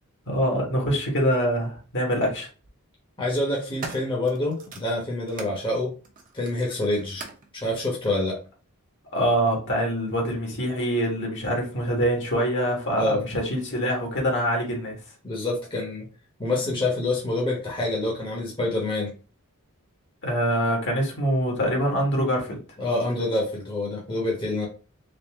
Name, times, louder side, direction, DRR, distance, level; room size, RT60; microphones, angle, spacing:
voice 1, 0.3-2.5 9.1-15.0 20.2-22.6, equal, 55° left, 0 dB, 1.6 m, -24 dB
sound 1, 1.2-1.3 2.4-2.7 3.3-5.6 6.0-7.5 8.4-8.5, right 3 dB, 40° right, 0.9 m, -41 dB
voice 2, 3.2-5.9 6.3-7.2 7.5-8.4 13.0-13.2 15.2-16.1 16.4-19.1 22.8-24.7, left 2 dB, 25° left, -3 dB, 1.1 m, -26 dB
4.0 x 2.7 x 3.5 m, 0.36 s
head